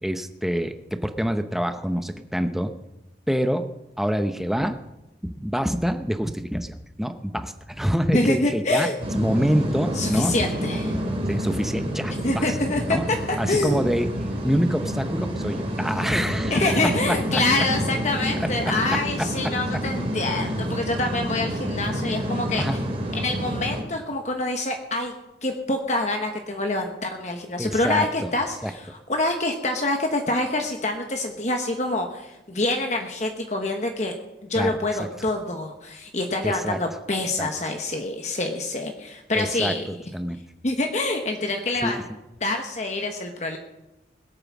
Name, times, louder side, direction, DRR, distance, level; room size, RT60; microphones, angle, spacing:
voice 1, 0.0-2.7 3.3-3.7 4.0-4.8 5.2-10.3 11.3-12.4 12.8-13.0 13.4-16.8 17.1-17.6 18.6-19.0 19.4-19.5 22.6-22.8 27.6-28.3 28.6-28.7 34.5-35.1 36.4-36.8 37.4-37.5 39.3-40.4 41.8-42.0, equal, ahead, 8 dB, 0.8 m, -26 dB
voice 2, 8.1-9.0 9.9-10.9 12.2-13.0 13.3-13.8 16.5-22.6 23.1-25.1 25.4-34.2 34.5-39.8 40.6-42.1 42.4-43.6, left 2 dB, 40° left, 3 dB, 1.2 m, -26 dB
sound 1, 9.0-23.8, equal, 35° right, 2.8 m, -28 dB
21.0 x 8.9 x 6.1 m, 0.96 s
head